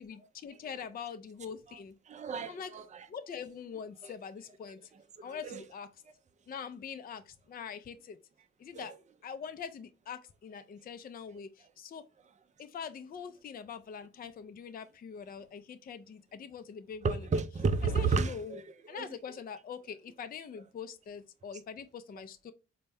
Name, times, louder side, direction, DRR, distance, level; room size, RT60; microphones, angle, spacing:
voice 1, 0.0-1.9 2.5-2.7 3.1-4.8 5.2-5.9 6.5-8.2 8.6-9.0 9.2-12.0 12.6-17.3 17.9-18.6 18.9-22.5, left 7 dB, 30° left, 0.5 m, -43 dB
voice 2, 2.1-3.1 4.0-4.1 5.2-5.6 8.7-8.9 17.0-18.6 18.9-19.1, right 4 dB, 25° right, 0.5 m, -32 dB
4.1 x 2.2 x 3.3 m
hypercardioid pair, 45°, 30 cm